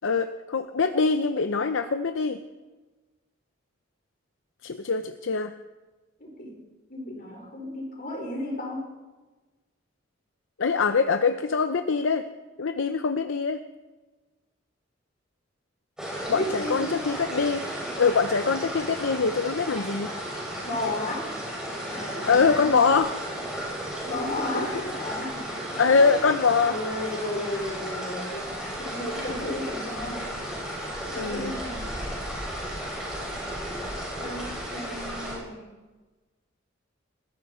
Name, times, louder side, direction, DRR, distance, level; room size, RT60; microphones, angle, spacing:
voice 1, 0.0-2.4 4.6-5.5 10.6-12.2 12.6-13.6 16.3-17.6 18.0-20.1 22.3-23.1 25.8-26.8 31.2-31.5, left 5 dB, 70° left, 9 dB, 0.7 m, -23 dB
voice 2, 6.2-6.6 6.9-8.9 16.3-17.0 20.6-21.4 21.9-22.8 24.0-26.3 26.6-30.4 31.1-32.0 34.2-35.7, left 1 dB, 45° left, -1 dB, 5.0 m, -34 dB
sound 1, 16.0-35.3, equal, 5° right, 6.4 m, -34 dB
20.0 x 14.0 x 4.4 m, 1.2 s
head